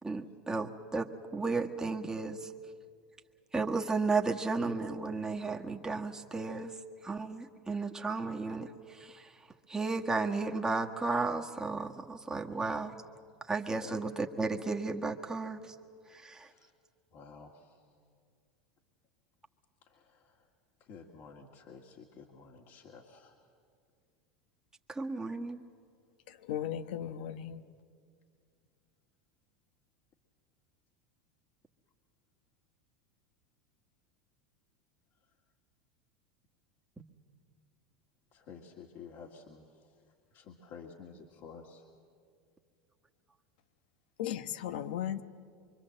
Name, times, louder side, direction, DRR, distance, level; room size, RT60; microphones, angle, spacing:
voice 1, 0.0-2.5 3.5-6.7 7.0-9.3 9.7-12.9 13.5-15.7 16.1-16.5 24.9-25.6, right 3 dB, 10° right, 1.6 m, -34 dB
voice 2, 16.3-16.7 17.1-17.8 19.9-20.4 20.8-23.3 38.3-39.9 40.3-41.9, left 5 dB, 50° left, 2.1 m, -51 dB
voice 3, 26.5-27.6 44.2-45.2, left 10 dB, 70° left, 1.1 m, -36 dB
25.0 x 24.5 x 7.7 m
hypercardioid pair, 100°, 5 cm